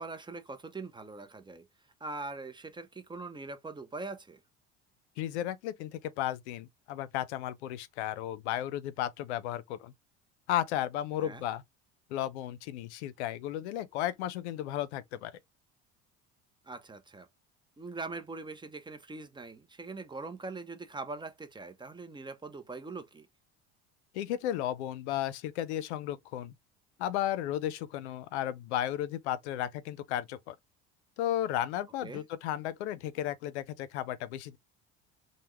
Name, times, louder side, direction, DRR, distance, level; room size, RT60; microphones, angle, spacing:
voice 1, 0.0-1.7 2.0-4.4 11.2-11.4 16.6-17.3 17.8-23.3 32.0-32.2, right 3 dB, 15° right, 0.5 m, -42 dB
voice 2, 5.2-9.9 10.5-11.6 12.1-15.3 24.1-26.5 27.0-30.6 31.2-34.6, left 12 dB, 85° left, 0.5 m, -34 dB
3.3 x 2.1 x 3.1 m
supercardioid pair, 80°, 33 cm